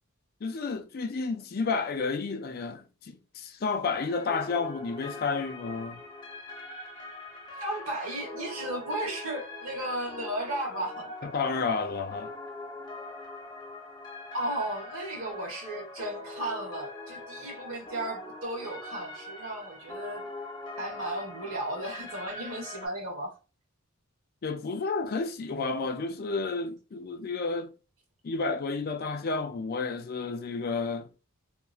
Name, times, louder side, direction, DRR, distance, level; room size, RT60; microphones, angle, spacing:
voice 1, 0.4-6.0 11.2-12.3 24.4-27.7 28.2-31.1, left 4 dB, 45° left, 0.4 m, -31 dB
sound 1, 3.9-22.9, left 2 dB, 20° left, 0.7 m, -42 dB
voice 2, 7.5-11.1 14.3-20.3 20.8-23.3, right 1 dB, 75° right, 1.3 m, -35 dB
2.9 x 2.5 x 2.4 m
head